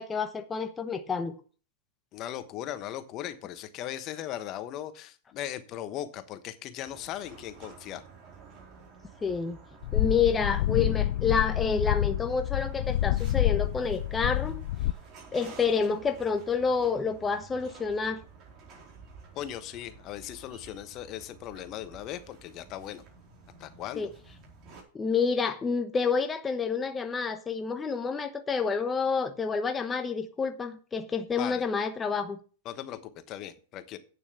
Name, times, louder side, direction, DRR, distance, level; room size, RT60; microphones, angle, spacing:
voice 1, 0.0-1.4 9.2-9.6 9.9-14.6 15.3-18.2 24.0-24.1 24.9-32.4, left 5 dB, 15° left, 1.0 m, -28 dB
voice 2, 2.1-8.0 19.3-23.0 23.6-24.1 31.4-31.6 32.6-34.0, left 12 dB, 40° left, 1.1 m, -38 dB
sound 1, 6.8-24.8, right 5 dB, 40° right, 4.5 m, -52 dB
sound 2, 9.8-14.9, left 14 dB, 65° left, 0.4 m, -28 dB
8.9 x 6.9 x 6.9 m
hypercardioid pair, 120°, 0 cm